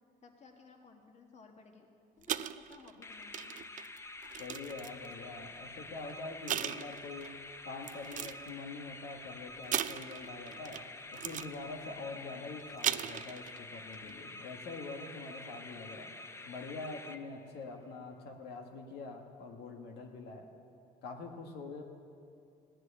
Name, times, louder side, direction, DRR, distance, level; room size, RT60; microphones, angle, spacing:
voice 1, 0.2-1.9 2.2-3.6, left 4 dB, 40° left, 3 dB, 1.6 m, -57 dB
sound 1, 2.2-5.1 5.9-6.1 6.5-7.3 7.8-8.5 9.7-10.9 11.1-11.5 12.6-13.6 13.9-14.1, right 11 dB, 50° right, 0.4 m, -37 dB
sound 2, 3.0-17.7, left 2 dB, 15° left, 0.7 m, -48 dB
voice 2, 4.4-7.4 7.6-10.8 11.1-16.1 16.5-20.5 21.0-21.8, left 3 dB, 80° left, 2 dB, 1.5 m, -45 dB
17.0 x 6.2 x 9.9 m, 2.5 s
cardioid pair, 110°, 17 cm